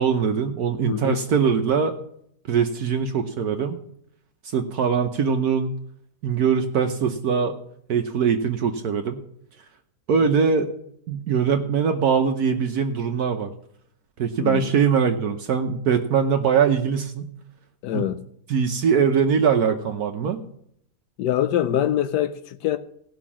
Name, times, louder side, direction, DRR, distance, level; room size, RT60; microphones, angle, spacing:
voice 1, 0.0-2.0 2.5-3.8 4.4-5.7 6.2-7.5 7.9-9.2 10.1-10.7 11.1-13.5 14.2-17.3 17.9-18.1 18.5-20.4, right 6 dB, 65° right, 1.3 m, -22 dB
voice 2, 0.9-1.2 14.4-14.6 17.8-18.2 21.2-22.8, left 11 dB, 85° left, 1.3 m, -24 dB
17.0 x 6.0 x 7.2 m
omnidirectional pair, 1.8 m